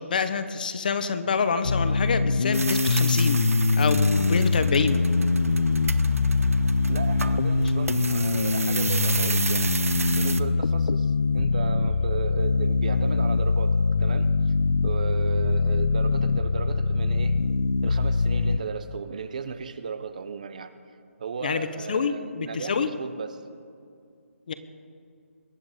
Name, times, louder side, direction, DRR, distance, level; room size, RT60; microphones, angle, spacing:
voice 1, 0.0-3.4 3.8-5.0 21.4-22.9 24.5-24.6, left 5 dB, 35° left, 11 dB, 0.8 m, -26 dB
sound 1, 1.6-18.6, left 4 dB, 80° left, 0.6 m, -23 dB
sound 2, 2.5-10.4, right 4 dB, 75° right, 0.8 m, -31 dB
voice 2, 6.9-14.3 14.8-17.4 17.8-20.7 21.2-23.4, right 6 dB, 30° right, 12 dB, 0.6 m, -35 dB
22.5 x 9.7 x 4.9 m, 2.4 s
hypercardioid pair, 170°, 8 cm